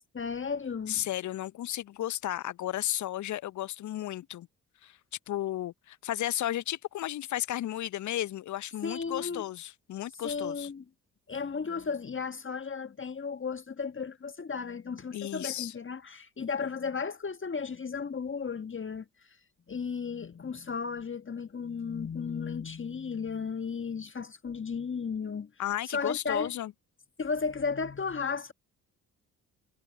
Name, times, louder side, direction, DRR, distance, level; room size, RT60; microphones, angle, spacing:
voice 1, 0.1-1.1 8.8-9.4 10.2-10.8 11.3-19.4 19.7-25.5 25.8-26.5 27.2-28.5, left 5 dB, 30° left, 1.5 m, -34 dB
voice 2, 0.9-4.5 4.8-5.0 5.3-10.7 15.1-15.7 25.6-26.7, left 13 dB, 45° left, 0.7 m, -34 dB
figure-of-eight pair, 40°, 43 cm